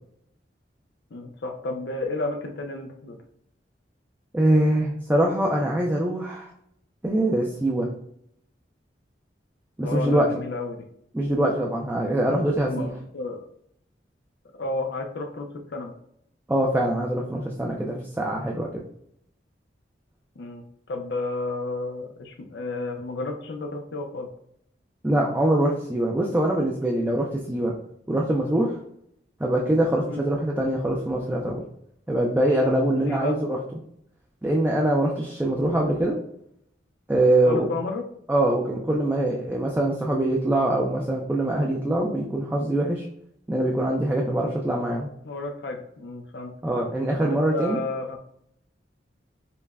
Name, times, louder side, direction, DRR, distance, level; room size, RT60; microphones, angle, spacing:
voice 1, 1.1-3.2 9.8-10.8 12.3-13.4 14.6-15.9 20.4-24.3 30.0-30.2 33.0-33.4 37.5-38.0 45.2-46.5 47.2-48.2, left 2 dB, 70° left, 2 dB, 0.5 m, -32 dB
voice 2, 4.3-6.5 7.0-7.9 9.8-10.3 11.1-12.9 16.5-18.8 25.0-27.7 28.1-28.8 29.4-31.6 32.1-33.6 34.4-36.2 37.1-37.7 38.3-43.0 43.5-45.1 46.6-47.8, right 1 dB, 10° right, -2 dB, 0.3 m, -23 dB
5.5 x 2.1 x 2.3 m, 0.73 s
head